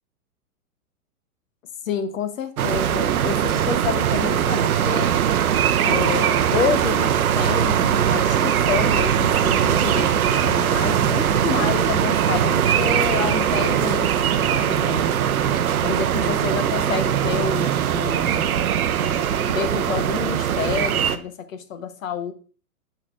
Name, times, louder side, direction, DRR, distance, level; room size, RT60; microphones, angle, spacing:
voice 1, 1.9-5.1 5.8-14.2 14.4-15.1 15.8-18.6 19.0-22.3, left 7 dB, 60° left, 11 dB, 1.0 m, -29 dB
sound 1, 2.6-21.2, right 9 dB, 75° right, 0.7 m, -21 dB
sound 2, 3.4-18.9, right 3 dB, 40° left, 2.2 m, -39 dB
9.1 x 5.7 x 2.4 m, 0.38 s
figure-of-eight pair, 110°, 43 cm